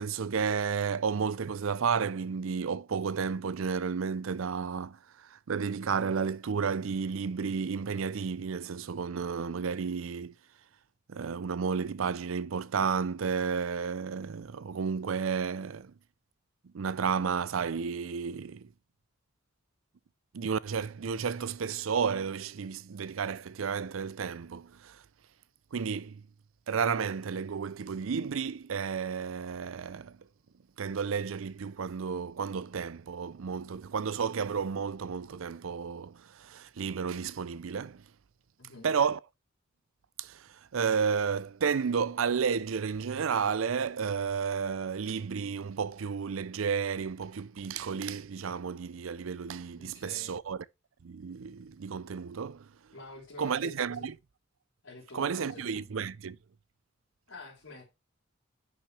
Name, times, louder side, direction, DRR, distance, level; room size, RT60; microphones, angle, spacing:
voice 1, 0.0-5.0 5.3-10.3 11.1-15.9 16.7-18.7 20.3-25.0 25.7-26.2 26.7-30.2 30.8-38.0 38.8-39.2 40.2-40.5 40.7-50.6 51.0-52.7 53.4-54.1 55.1-56.4, right 6 dB, 70° right, 0.5 m, -32 dB
voice 2, 38.6-38.9 49.8-50.4 52.9-54.1 54.8-55.9 57.3-57.8, left 2 dB, 70° left, 3.8 m, -48 dB
10.0 x 6.1 x 3.2 m
head